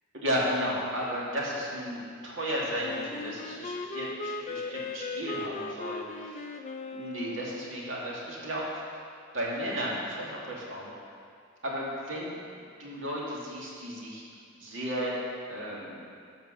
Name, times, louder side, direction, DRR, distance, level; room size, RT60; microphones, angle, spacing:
voice 1, 0.1-6.5 6.9-8.8 9.3-10.9 11.6-12.3 12.8-14.2 14.6-15.2 15.5-16.0, equal, 65° right, -5 dB, 2.3 m, -34 dB
Wind instrument woodwind instrument, 2.8-7.9, left 3 dB, 35° left, 0.5 m, -38 dB
12.0 x 4.8 x 6.5 m, 2.2 s
head